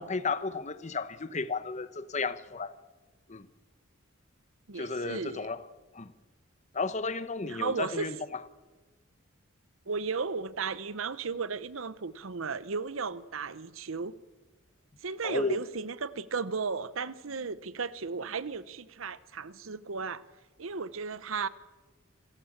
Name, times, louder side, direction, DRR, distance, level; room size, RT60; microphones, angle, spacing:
voice 1, 0.0-2.7 3.3-3.5 4.7-5.6 5.9-6.1 6.7-8.2 15.2-15.6, left 3 dB, 35° left, 0.9 m, -33 dB
voice 2, 4.7-5.5 7.4-8.1 9.9-14.1 15.0-20.2 20.6-21.5, right 4 dB, 80° right, 0.8 m, -35 dB
26.5 x 15.0 x 7.3 m
head